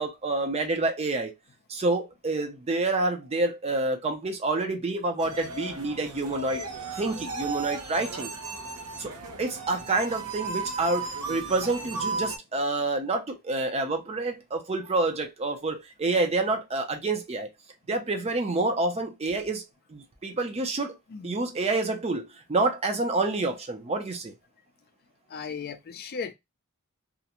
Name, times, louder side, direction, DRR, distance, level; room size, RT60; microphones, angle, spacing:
voice 1, 0.0-1.3 1.7-6.6 7.0-8.3 9.0-17.5 17.9-19.6 19.9-21.0 21.2-24.3, right 2 dB, 30° right, 0.5 m, -28 dB
sound 1, 5.2-12.4, right 3 dB, 70° right, 0.7 m, -35 dB
voice 2, 21.1-21.4 25.3-26.3, left 5 dB, 45° left, 0.4 m, -36 dB
2.4 x 2.1 x 2.8 m
head